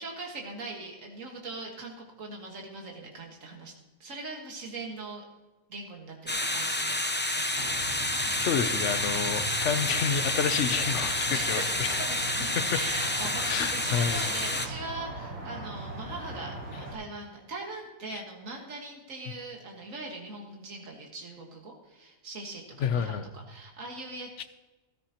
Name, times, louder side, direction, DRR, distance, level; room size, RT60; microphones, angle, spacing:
voice 1, 0.0-3.7 4.0-5.2 5.7-7.0 7.3-7.7 9.0-9.5 11.3-24.4, right 3 dB, 75° right, 0 dB, 2.1 m, -41 dB
sound 1, 6.3-14.7, left 1 dB, 10° left, 0.5 m, -29 dB
sound 2, 7.5-16.9, right 2 dB, 60° right, 4.4 m, -40 dB
voice 2, 8.3-12.0 13.4-14.2 18.1-18.2 22.8-23.3 24.4-24.5, left 7 dB, 65° left, 11 dB, 1.0 m, -29 dB
15.0 x 13.0 x 2.9 m, 1.2 s
omnidirectional pair, 1.4 m